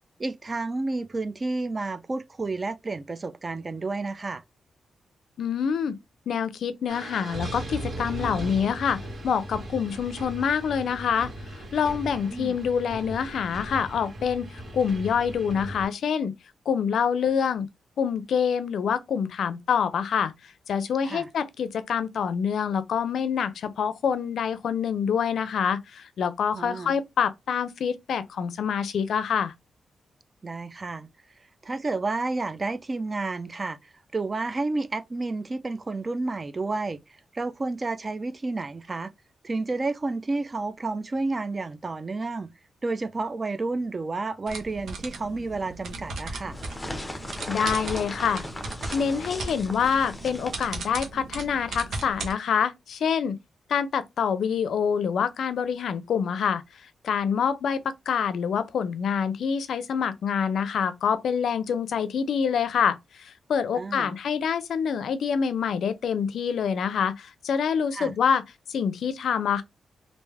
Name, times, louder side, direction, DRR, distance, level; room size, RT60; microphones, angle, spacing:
voice 1, 0.2-4.4 12.3-12.6 21.0-21.3 26.5-26.9 30.4-31.1 31.6-37.0 37.3-39.1 39.4-42.5 42.8-46.6 63.7-64.1 67.9-68.1, right 3 dB, 30° right, 0.4 m, -30 dB
voice 2, 5.4-6.0 6.3-9.0 9.2-16.3 16.7-17.7 18.0-20.3 20.7-29.5 47.5-48.4 48.9-53.4 53.7-56.6 57.0-68.4 68.7-69.6, left 7 dB, 75° left, 0.4 m, -26 dB
sound 1, 6.9-15.9, right 1 dB, 50° right, 1.8 m, -37 dB
sound 2, 44.5-52.3, right 3 dB, 75° right, 1.0 m, -37 dB
sound 3, 45.9-50.9, left 1 dB, 10° left, 0.7 m, -37 dB
3.3 x 2.5 x 3.4 m
wide cardioid pair, 120°, 0 cm